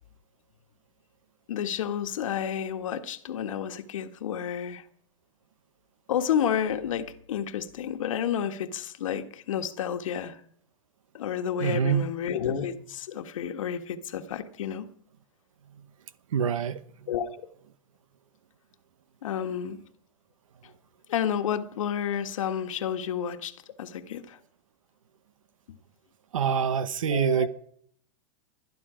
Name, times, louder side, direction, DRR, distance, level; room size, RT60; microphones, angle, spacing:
voice 1, 1.5-4.8 6.1-10.4 11.1-14.9 17.1-17.5 19.2-19.8 21.1-24.4 25.7-25.8 27.1-27.5, left 9 dB, 80° left, 1.6 m, -30 dB
voice 2, 11.6-12.1 16.3-16.8 26.3-27.5, right 7 dB, 85° right, 0.9 m, -25 dB
20.5 x 12.0 x 5.0 m
hypercardioid pair, 130°, 17 cm